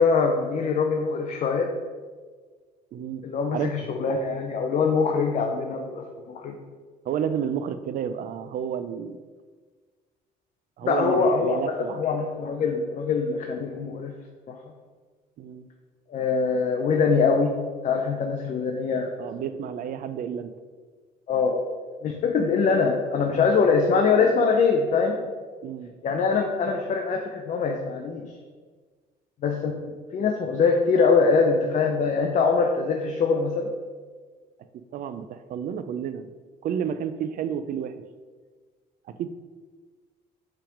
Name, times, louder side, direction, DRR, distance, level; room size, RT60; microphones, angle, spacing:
voice 1, 0.0-1.7 3.2-6.6 10.8-11.6 11.9-14.1 14.5-14.6 16.1-17.5 17.8-19.1 21.3-21.7 22.0-25.2 26.0-28.3 29.4-29.7 30.1-33.7, left 5 dB, 45° left, 2 dB, 0.6 m, -23 dB
voice 2, 2.9-3.2 3.5-3.9 7.0-9.2 10.8-12.0 15.4-15.7 19.2-20.5 25.6-25.9 34.9-36.3 36.6-38.0 39.1-39.3, right 8 dB, 55° right, 11 dB, 0.4 m, -31 dB
5.6 x 3.5 x 5.0 m, 1.5 s
cardioid pair, 110°, 17 cm